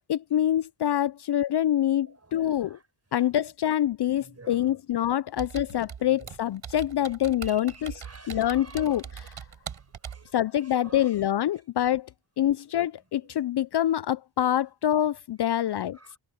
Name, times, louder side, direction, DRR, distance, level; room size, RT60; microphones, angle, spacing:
voice 1, 0.0-2.8 3.1-9.3 10.3-12.1 12.4-16.0, left 11 dB, 55° left, 0.6 m, -26 dB
voice 2, 2.0-2.8 4.2-4.7 6.0-6.3 7.4-9.3 9.6-11.1 15.5-16.2, right 3 dB, 30° right, 7.5 m, -51 dB
Computer keyboard, 5.4-10.3, right 7 dB, 75° right, 5.4 m, -41 dB
cardioid pair, 50°, 48 cm